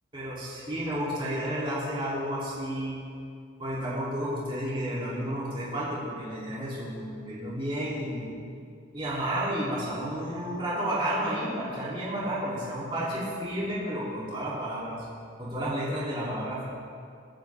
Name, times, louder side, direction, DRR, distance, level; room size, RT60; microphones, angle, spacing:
voice 1, 0.1-3.0 3.6-8.3 8.9-15.0 15.4-16.6, right 1 dB, 25° right, -8 dB, 3.2 m, -31 dB
23.0 x 9.9 x 3.6 m, 2.4 s
head